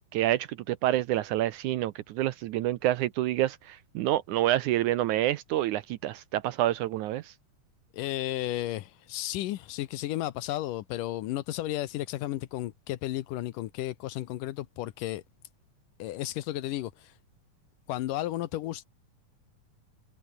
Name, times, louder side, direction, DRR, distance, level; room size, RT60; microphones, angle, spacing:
voice 1, 0.1-7.3, right 14 dB, 75° right, 1.9 m, -28 dB
voice 2, 7.9-15.2 16.0-17.1 17.9-18.8, left 15 dB, 75° left, 2.4 m, -33 dB
omnidirectional pair, 4.0 m